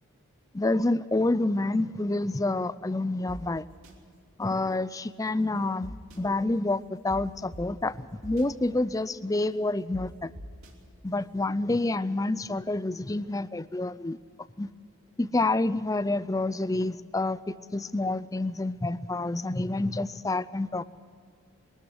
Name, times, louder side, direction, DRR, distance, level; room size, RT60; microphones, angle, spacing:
voice 1, 0.5-3.6 4.4-10.3 11.0-14.2 14.6-14.7 15.2-20.8, left 2 dB, 15° left, 16 dB, 0.4 m, -28 dB
sound 1, 3.3-3.4 3.8-3.9 5.8-6.2 7.1-7.2 7.5-7.6 8.2-8.4 9.9-10.0 10.3-10.7, equal, 70° right, 2.9 m, -41 dB
22.0 x 13.0 x 9.6 m, 2.3 s
head